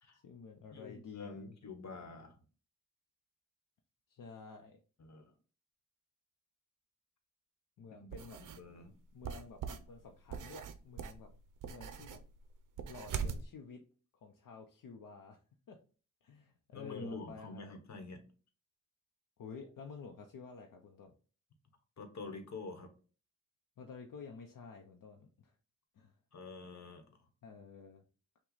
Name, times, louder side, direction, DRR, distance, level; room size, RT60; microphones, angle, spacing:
voice 1, 0.1-1.6 4.1-4.8 7.8-8.4 9.1-11.3 11.6-12.2 12.9-13.8 14.2-15.4 15.7-15.8 16.2-17.8 19.4-21.1 23.8-25.5 26.0-26.2 27.4-28.0, left 5 dB, 70° left, 3 dB, 0.7 m, -51 dB
voice 2, 0.7-2.4 5.0-5.3 7.9-8.1 8.4-8.9 16.7-18.2 22.0-22.9 26.3-27.0, left 3 dB, 55° left, 6 dB, 1.1 m, -47 dB
sound 1, 8.1-8.6 9.2-13.5, right 7 dB, 65° right, 0.6 m, -42 dB
5.9 x 2.3 x 3.9 m, 0.37 s
wide cardioid pair, 130°, 34 cm